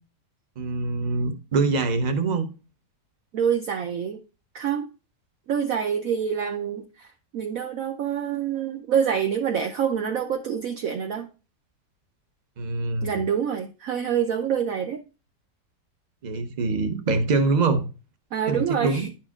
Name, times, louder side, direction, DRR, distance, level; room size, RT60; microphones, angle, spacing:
voice 1, 0.6-2.5 12.6-13.1 16.2-17.9 18.5-19.1, right 3 dB, 40° right, 0.6 m, -24 dB
voice 2, 3.3-4.2 4.5-4.9 5.5-11.3 13.0-15.0 18.3-19.1, right 8 dB, 65° right, 1.0 m, -26 dB
11.0 x 4.4 x 2.4 m
omnidirectional pair, 1.8 m